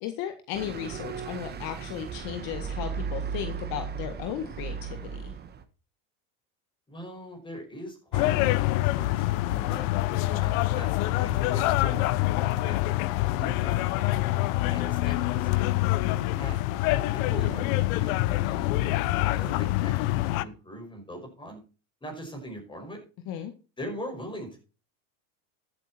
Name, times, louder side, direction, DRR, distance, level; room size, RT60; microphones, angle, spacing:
voice 1, 0.0-5.3 23.3-23.5, left 10 dB, 55° left, 7 dB, 1.8 m, -35 dB
sound 1, 0.5-5.6, right 6 dB, 20° right, 1.3 m, -36 dB
voice 2, 6.9-9.8 10.2-10.9 11.2-13.8 14.7-16.6 16.9-21.6 22.0-23.0 23.8-24.6, equal, 10° left, 2 dB, 5.9 m, -41 dB
sound 2, 8.1-20.4, left 17 dB, 70° left, 0.9 m, -26 dB
14.0 x 8.9 x 4.4 m, 0.34 s
supercardioid pair, 140°, 44 cm